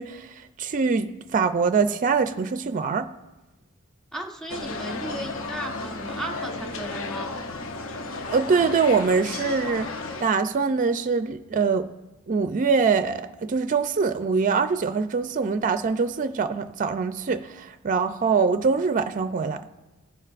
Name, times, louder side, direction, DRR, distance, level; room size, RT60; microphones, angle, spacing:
voice 1, 0.0-3.1 8.3-9.9 10.2-11.9 12.3-19.6, right 5 dB, 40° right, 0.4 m, -23 dB
voice 2, 4.1-7.3, right 1 dB, 5° left, 1.3 m, -35 dB
sound 1, 4.5-10.2, left 3 dB, 65° left, 0.8 m, -33 dB
19.5 x 11.0 x 2.5 m
head